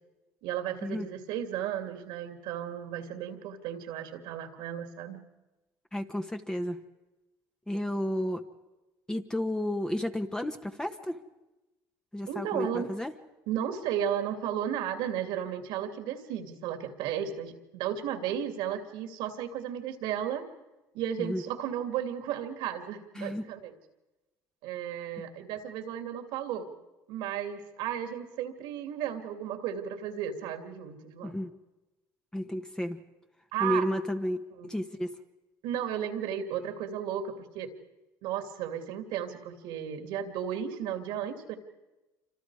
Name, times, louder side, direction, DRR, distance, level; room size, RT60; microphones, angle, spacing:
voice 1, 0.4-5.2 12.3-12.9 13.5-20.5 20.9-23.7 24.6-26.7 27.1-31.4 33.5-33.9 34.6-34.7 35.6-37.7 38.2-41.6, right 9 dB, 75° right, 6 dB, 2.6 m, -34 dB
voice 2, 5.9-6.8 7.7-8.4 9.1-11.2 12.1-13.1 21.2-21.4 23.2-23.4 31.2-31.5 32.3-33.0 33.6-35.1, equal, 10° left, 6 dB, 1.3 m, -32 dB
27.5 x 25.5 x 4.9 m, 1.1 s
supercardioid pair, 85°, 8 cm